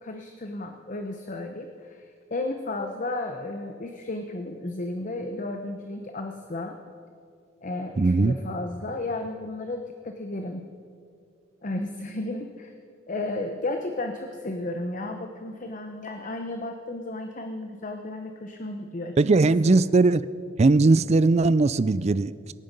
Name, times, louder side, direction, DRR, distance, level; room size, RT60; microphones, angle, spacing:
voice 1, 0.0-2.0 2.3-6.8 7.6-10.7 11.6-12.7 13.1-19.1 19.6-19.8, left 2 dB, 45° left, 5 dB, 0.8 m, -33 dB
voice 2, 8.0-8.3 19.2-20.3 20.6-22.5, right 3 dB, 35° right, 17 dB, 0.4 m, -19 dB
23.5 x 9.4 x 5.3 m, 2.3 s
head